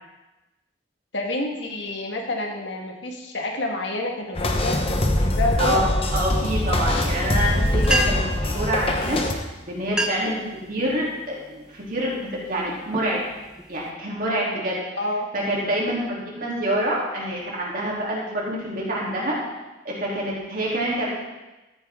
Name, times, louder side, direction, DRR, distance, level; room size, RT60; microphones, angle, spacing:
voice 1, 1.1-5.0 5.3-5.8 14.9-15.3, left 2 dB, 65° left, 1 dB, 1.7 m, -28 dB
sound 1, 4.3-9.3, left 1 dB, 30° left, 0.9 m, -23 dB
voice 2, 5.6-9.2 9.6-10.4 10.7-13.2 13.7-14.8 15.3-19.4 19.8-21.1, right 1 dB, 45° right, -4 dB, 3.1 m, -26 dB
sound 2, 7.8-8.4 9.3-9.4 9.8-10.4 10.9-11.2 11.8-12.1 12.6-13.9, equal, 5° right, 0.8 m, -28 dB
13.5 x 9.9 x 3.7 m, 1.1 s
head